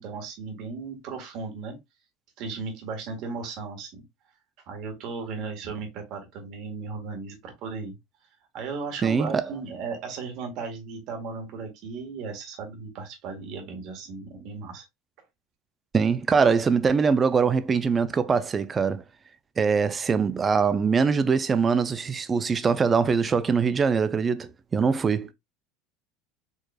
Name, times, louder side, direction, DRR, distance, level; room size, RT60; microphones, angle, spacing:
voice 1, 0.0-1.8 2.4-4.0 4.7-7.9 8.5-14.8, right 4 dB, 55° right, 1.5 m, -36 dB
voice 2, 9.0-9.3 15.9-19.0 19.6-25.3, right 5 dB, 25° right, 0.4 m, -23 dB
4.6 x 3.1 x 2.3 m
supercardioid pair, 120°, 0 cm